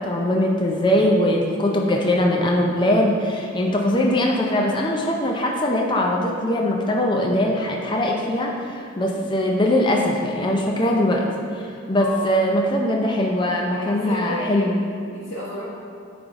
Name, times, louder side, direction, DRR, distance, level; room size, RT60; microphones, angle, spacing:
voice 1, 0.0-11.3 11.9-14.8, left 1 dB, 25° left, 0 dB, 0.4 m, -21 dB
voice 2, 11.9-12.3 13.7-15.6, left 1 dB, 80° left, -9 dB, 1.5 m, -33 dB
8.8 x 3.4 x 3.6 m, 2.5 s
head